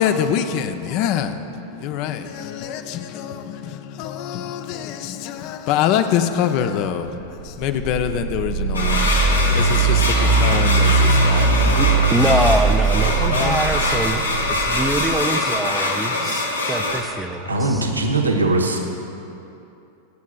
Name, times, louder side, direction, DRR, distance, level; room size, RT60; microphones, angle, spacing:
voice 1, 0.0-9.1 9.5-11.8 13.3-13.6 14.4-14.9 15.2-15.5 15.8-16.3, left 9 dB, 45° left, 0.6 m, -25 dB
sound 1, 7.2-15.2, right 3 dB, 45° right, 0.7 m, -20 dB
sound 2, 8.7-17.0, left 2 dB, 80° left, 1.3 m, -23 dB
voice 2, 11.7-17.4 17.7-17.8, right 2 dB, 10° right, 0.6 m, -24 dB
voice 3, 17.4-18.8, right 2 dB, 80° right, 1.0 m, -20 dB
25.0 x 8.3 x 2.4 m
figure-of-eight pair, 90°, 0 cm